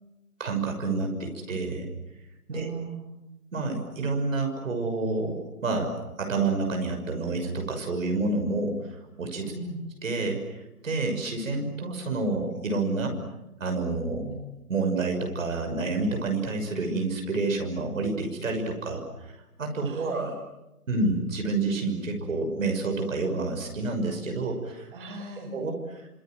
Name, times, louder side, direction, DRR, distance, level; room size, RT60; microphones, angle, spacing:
voice 1, 0.4-1.9 2.5-2.7 3.5-9.5 10.0-13.2 13.6-14.3 14.7-20.3 20.9-24.9 25.5-26.1, right 3 dB, 55° right, 3 dB, 6.4 m, -29 dB
voice 2, 2.5-3.1 9.5-9.8 14.2-14.4 19.8-20.4 24.9-25.5, right 3 dB, 35° right, 3 dB, 6.4 m, -38 dB
27.0 x 27.0 x 7.8 m, 0.98 s
hypercardioid pair, 155°, 45 cm